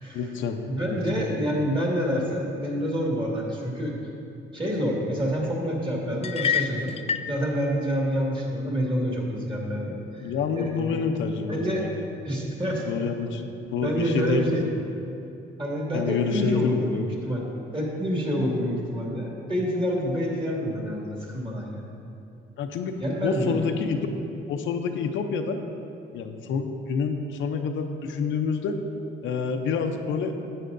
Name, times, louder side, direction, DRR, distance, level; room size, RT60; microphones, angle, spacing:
voice 1, 0.0-1.3 10.2-11.9 12.7-14.6 15.9-17.0 22.6-24.1 24.5-25.6 26.1-28.8 29.2-30.3, left 5 dB, 75° left, 5 dB, 0.6 m, -28 dB
voice 2, 0.7-3.9 4.5-6.9 7.3-10.9 11.5-11.8 12.2-13.0 13.8-14.6 15.6-17.5 17.7-21.8 23.0-23.6, equal, 25° right, -3 dB, 2.0 m, -27 dB
sound 1, 6.2-7.3, left 7 dB, 30° left, 0.4 m, -27 dB
11.0 x 8.3 x 2.6 m, 2.8 s
cardioid pair, 90°, 20 cm